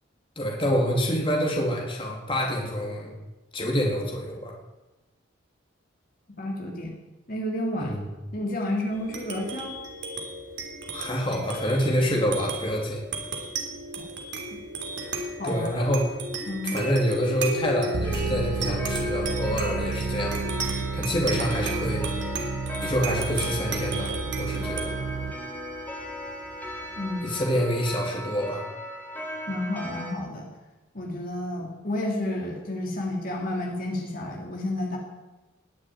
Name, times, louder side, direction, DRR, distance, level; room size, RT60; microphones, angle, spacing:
voice 1, 0.3-3.1 3.5-4.5 7.8-8.1 10.9-13.0 15.0-15.1 15.4-16.1 16.7-20.4 20.9-22.0 22.8-24.1 24.4-24.9 27.2-28.6, equal, 25° left, -1 dB, 3.2 m, -27 dB
voice 2, 6.4-6.9 7.3-7.9 8.3-9.7 14.0-14.1 15.4-15.9 16.5-16.8 27.0-27.3 29.5-30.5 30.9-35.0, left 1 dB, 45° left, -1 dB, 3.1 m, -31 dB
sound 1, 8.9-27.8, right 2 dB, 65° right, 3.1 m, -35 dB
sound 2, 17.9-25.3, right 4 dB, 85° right, 1.0 m, -32 dB
Clock, 18.0-30.1, equal, 10° left, 4.1 m, -38 dB
20.5 x 7.5 x 9.4 m, 1.1 s
head